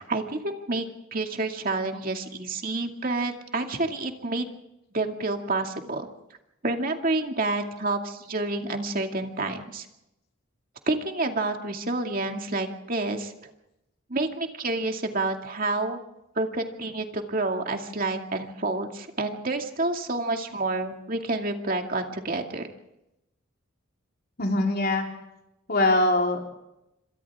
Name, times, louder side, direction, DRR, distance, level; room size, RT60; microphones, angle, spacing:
voice 1, 0.0-4.5 4.9-6.1 6.6-9.9 10.9-13.3 14.1-16.0 16.4-22.7, right 2 dB, 45° right, 3 dB, 2.4 m, -29 dB
voice 2, 24.4-25.1 25.7-26.4, left 2 dB, 50° left, 1 dB, 3.9 m, -22 dB
28.0 x 26.0 x 3.7 m, 0.88 s
head